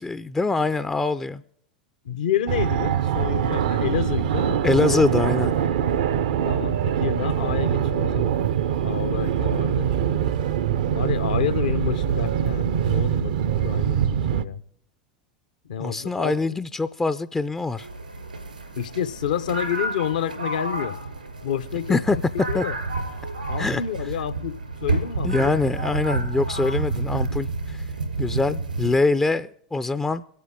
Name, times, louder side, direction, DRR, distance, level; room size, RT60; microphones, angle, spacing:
voice 1, 0.0-1.4 4.6-5.5 15.8-17.9 21.9-22.2 22.5-22.6 23.6-23.8 25.2-27.9 28.2-30.2, left 3 dB, 10° left, 0.4 m, -24 dB
voice 2, 2.0-5.0 6.4-8.4 8.8-9.9 10.9-14.6 15.6-16.3 18.8-21.0 21.4-22.0 22.5-22.8 23.5-25.5, left 9 dB, 70° left, 0.8 m, -29 dB
Fixed-wing aircraft airplane, 2.5-14.4, right 9 dB, 70° right, 0.6 m, -23 dB
sound 1, 17.8-29.0, right 2 dB, 90° right, 3.7 m, -29 dB
24.0 x 8.6 x 3.7 m
hypercardioid pair, 90°, 4 cm